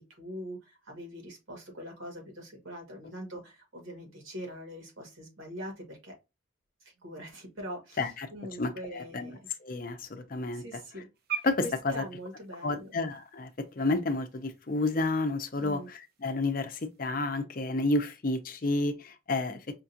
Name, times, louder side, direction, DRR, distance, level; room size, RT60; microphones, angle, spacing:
voice 1, 0.2-6.1 7.0-8.0 8.3-9.4 10.5-11.1 11.6-13.0 15.6-15.9 19.4-19.6, equal, 80° right, 1.8 m, -42 dB
voice 2, 8.0-8.3 8.6-9.3 9.6-10.8 11.4-12.0 12.6-13.5 13.8-19.6, left 2 dB, 40° left, 0.5 m, -30 dB
sound 1, 11.1-17.3, right 7 dB, 50° right, 0.5 m, -45 dB
5.1 x 2.4 x 2.7 m
head